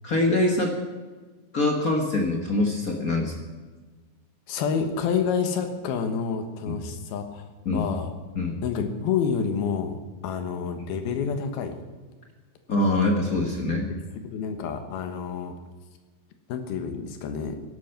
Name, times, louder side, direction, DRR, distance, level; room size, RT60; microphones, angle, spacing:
voice 1, 0.0-0.7 1.5-3.3 6.7-6.8 7.6-7.9 8.3-8.6 12.7-13.9, left 2 dB, 60° left, 1 dB, 0.9 m, -24 dB
voice 2, 4.5-7.4 7.7-8.1 8.6-10.0 10.2-11.8 14.2-15.6 16.5-17.6, left 6 dB, 90° left, 7 dB, 3.3 m, -28 dB
15.5 x 12.0 x 5.9 m, 1.4 s
omnidirectional pair, 4.3 m